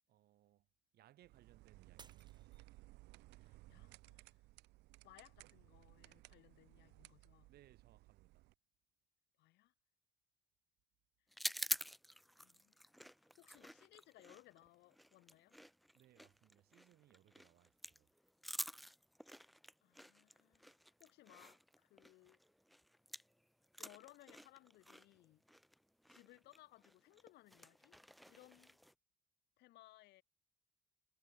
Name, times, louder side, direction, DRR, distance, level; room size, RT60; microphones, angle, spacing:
voice 1, 0.1-0.7 0.9-2.5 7.5-8.5 15.9-18.1, right 14 dB, 70° right, 4.0 m, -68 dB
sound 1, 1.2-8.5, right 20 dB, 90° right, 1.4 m, -61 dB
Shatter, 2.0-3.3 3.8-4.2 4.8-4.9, right 5 dB, 25° right, 2.5 m, -63 dB
voice 2, 3.3-4.4 5.0-7.5 9.4-9.7 12.4-12.7 13.4-15.5 19.4-19.5 19.8-22.4 23.8-25.4 26.1-28.0 28.3-28.8 29.6-30.2, left 18 dB, 85° left, 3.2 m, -64 dB
sound 2, 11.3-23.4 23.6-28.9, equal, ahead, 0.5 m, -48 dB
cardioid pair, 110°, 17 cm